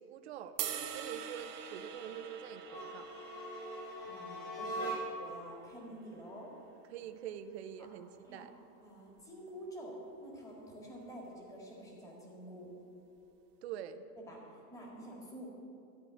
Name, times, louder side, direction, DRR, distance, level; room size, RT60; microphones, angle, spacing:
voice 1, 0.0-3.1 6.9-8.5 13.6-14.0, right 9 dB, 40° right, 10 dB, 0.6 m, -45 dB
sound 1, 0.6-6.8, right 9 dB, 65° right, 1.3 m, -45 dB
sound 2, 2.6-5.4, right 1 dB, 50° left, 3.0 m, -41 dB
voice 2, 4.0-6.5 7.8-7.9 8.2-8.4 8.8-9.9 10.2-12.7 14.2-15.5, equal, 5° left, -3 dB, 1.8 m, -49 dB
13.5 x 4.8 x 9.0 m, 2.6 s
supercardioid pair, 155°, 50 cm